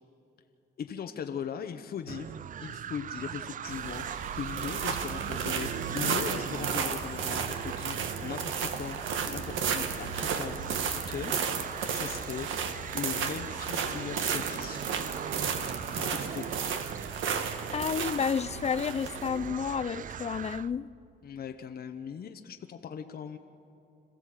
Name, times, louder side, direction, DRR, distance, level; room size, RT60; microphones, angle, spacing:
voice 1, 0.8-2.3 2.6-11.7 11.9-12.5 12.9-14.9 15.9-16.8 21.2-23.4, left 7 dB, 50° left, 7 dB, 0.9 m, -39 dB
sound 1, 2.1-20.7, right 9 dB, 45° right, 0.4 m, -40 dB
sound 2, 3.7-20.6, right 6 dB, 80° right, 1.5 m, -34 dB
voice 2, 17.7-20.9, left 7 dB, 35° left, 18 dB, 0.5 m, -31 dB
26.5 x 15.5 x 7.6 m, 2.6 s
cardioid pair, 90°, 20 cm